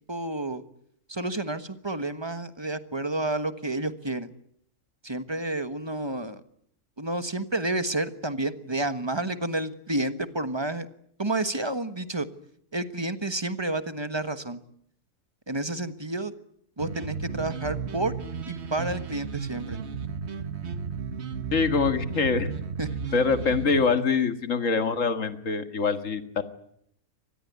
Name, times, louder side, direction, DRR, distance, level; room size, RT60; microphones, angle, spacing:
voice 1, 0.1-0.6 1.1-4.3 5.0-6.4 7.0-10.9 11.2-12.3 12.7-14.6 15.5-16.3 16.8-18.1 18.4-19.8 22.8-22.9, right 2 dB, 20° right, 11 dB, 1.3 m, -30 dB
sound 1, 16.8-23.8, right 6 dB, 45° right, 1.5 m, -34 dB
voice 2, 21.5-22.5 23.1-26.4, left 5 dB, 55° left, 9 dB, 2.2 m, -24 dB
25.0 x 20.0 x 9.6 m, 0.70 s
omnidirectional pair, 1.6 m